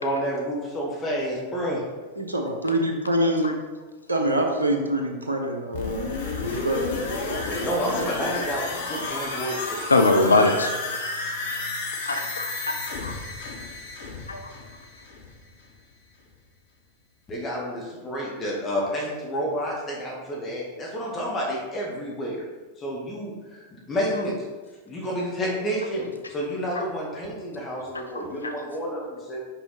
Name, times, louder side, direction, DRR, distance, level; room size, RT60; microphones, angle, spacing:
voice 1, 0.0-1.8 7.4-9.6 17.3-22.4 22.8-24.3 24.9-29.4, equal, 20° left, -3 dB, 1.5 m, -30 dB
voice 2, 2.2-3.5 4.1-6.2 6.4-7.7, right 1 dB, 80° right, 3 dB, 1.0 m, -26 dB
sound 1, 5.7-15.5 15.8-15.9, left 3 dB, 60° left, 1.3 m, -31 dB
voice 3, 9.9-10.7 12.0-12.5 13.0-13.1 14.3-14.4 26.8-26.9 28.1-28.5, left 2 dB, 75° left, 6 dB, 0.5 m, -21 dB
6.1 x 5.7 x 4.0 m, 1.3 s
figure-of-eight pair, 90°, 0 cm